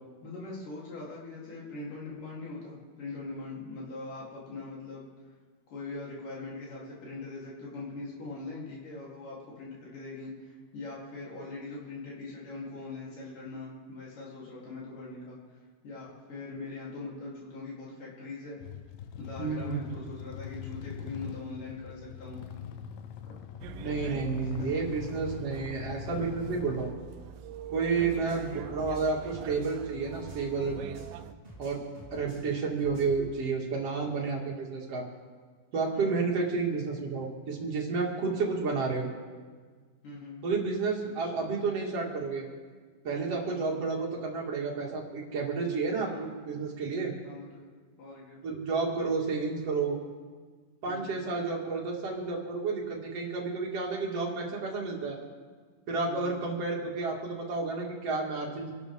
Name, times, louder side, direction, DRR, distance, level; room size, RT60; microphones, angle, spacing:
voice 1, 0.2-5.3 5.7-18.6 19.2-22.5 24.3-25.3 28.1-28.4 34.2-34.4 35.9-36.2 38.2-38.4 40.0-40.4 41.0-41.5 43.4-43.9 45.9-46.3 47.2-47.7 48.0-48.4 50.8-51.3 56.1-56.5, left 3 dB, 65° left, -6 dB, 4.9 m, -42 dB
sound 1, 18.6-26.8, left 9 dB, 80° left, 2.5 m, -42 dB
voice 2, 19.4-19.8 23.8-26.9 27.7-30.8 31.6-31.8 32.1-35.1 35.7-39.1 40.4-42.5 43.0-47.1 48.4-50.0 50.8-55.2 55.9-58.7, right 4 dB, 45° right, -2 dB, 3.0 m, -31 dB
sound 2, 23.6-31.3, right 9 dB, 80° right, 2.3 m, -44 dB
sound 3, 27.9-31.2 31.4-33.3, right 1 dB, 20° right, 2.2 m, -50 dB
26.5 x 12.0 x 3.6 m, 1.5 s
omnidirectional pair, 4.1 m